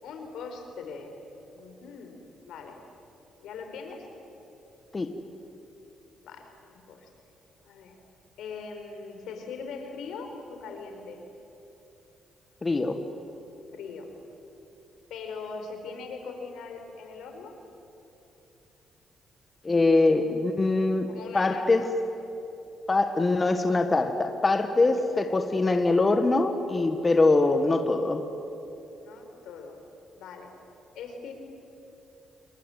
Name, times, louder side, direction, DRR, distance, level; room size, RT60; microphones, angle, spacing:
voice 1, 0.0-1.1 1.5-2.2 2.4-2.8 3.4-4.1 6.2-7.1 7.6-8.0 8.4-11.2 13.7-14.1 15.1-17.5 19.8-20.2 21.1-21.9 28.9-29.8 30.2-30.5 30.9-31.3, left 5 dB, 80° left, 4 dB, 4.4 m, -41 dB
voice 2, 12.6-13.0 19.6-21.8 22.9-28.2, left 3 dB, 25° left, 7 dB, 1.6 m, -23 dB
29.0 x 21.5 x 9.3 m, 3.0 s
cardioid pair, 90°, 0 cm